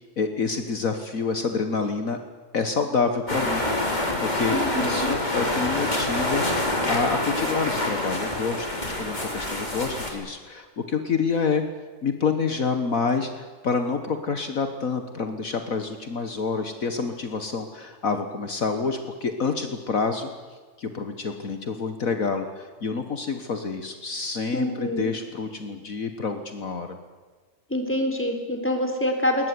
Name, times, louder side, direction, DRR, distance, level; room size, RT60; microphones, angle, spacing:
voice 1, 0.2-2.2 2.5-11.6 12.0-20.3 20.8-27.0, left 5 dB, 60° left, 7 dB, 1.9 m, -28 dB
sound 1, 3.3-10.1, left 1 dB, 25° left, 4.0 m, -26 dB
voice 2, 4.5-5.1 24.5-25.1 27.7-29.5, left 1 dB, 5° left, 4 dB, 3.7 m, -26 dB
20.5 x 20.5 x 9.6 m, 1.4 s
omnidirectional pair, 1.7 m